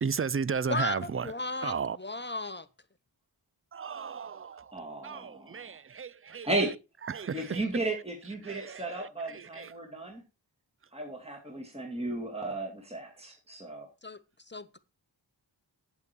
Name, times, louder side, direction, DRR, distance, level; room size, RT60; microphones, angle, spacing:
voice 1, 0.0-1.3 1.6-2.0 3.7-4.7 5.0-6.5 7.1-7.6 8.4-9.7, right 6 dB, 30° right, 0.4 m, -34 dB
voice 2, 0.7-2.7 14.0-14.8, left 2 dB, 25° left, 0.9 m, -35 dB
voice 3, 4.7-5.8 6.4-6.7 7.3-10.2 10.9-13.9, right 2 dB, 15° right, 2.4 m, -34 dB
8.2 x 8.2 x 4.5 m
wide cardioid pair, 50°, 47 cm